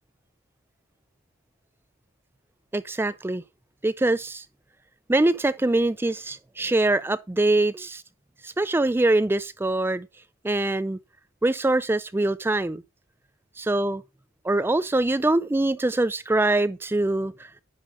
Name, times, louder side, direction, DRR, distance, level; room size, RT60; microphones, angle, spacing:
voice 1, 2.7-3.4 3.8-4.4 5.1-8.0 8.4-10.1 10.4-11.0 11.4-12.8 13.6-14.0 14.4-17.3, right 2 dB, 10° right, 0.3 m, -23 dB
9.8 x 5.1 x 3.7 m
head